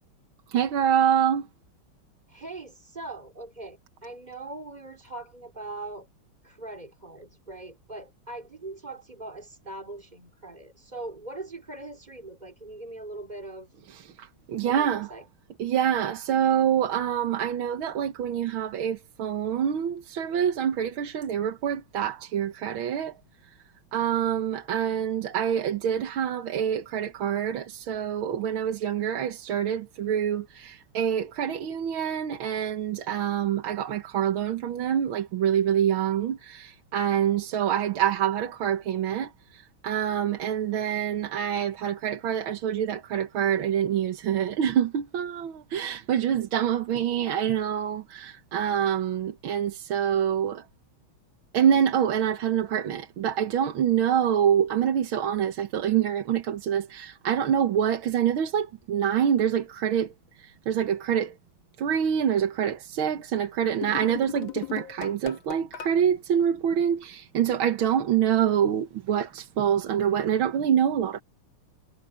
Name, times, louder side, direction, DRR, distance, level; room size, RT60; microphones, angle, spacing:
voice 1, 0.5-1.5 13.9-15.1 15.6-23.1 23.9-50.6 51.5-60.1 60.4-61.3 61.8-71.2, right 9 dB, 75° right, 2.0 m, -26 dB
voice 2, 2.3-6.1 6.4-13.7 14.6-15.3, right 2 dB, 20° right, 2.9 m, -41 dB
sound 1, 63.8-66.0, left 10 dB, 65° left, 2.1 m, -37 dB
omnidirectional pair, 2.4 m